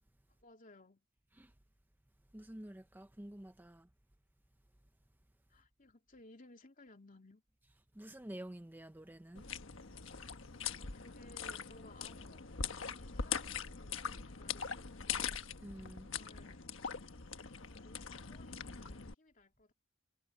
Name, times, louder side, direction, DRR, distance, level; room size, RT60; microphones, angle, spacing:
voice 1, 0.4-1.0 5.5-7.4 10.7-15.4 15.9-16.7 17.6-19.7, left 2 dB, 45° left, 2.9 m, -60 dB
voice 2, 2.3-3.9 7.9-9.5 15.6-16.1, right 1 dB, 10° right, 0.6 m, -49 dB
sound 1, 9.4-19.1, left 6 dB, 80° left, 1.3 m, -42 dB
head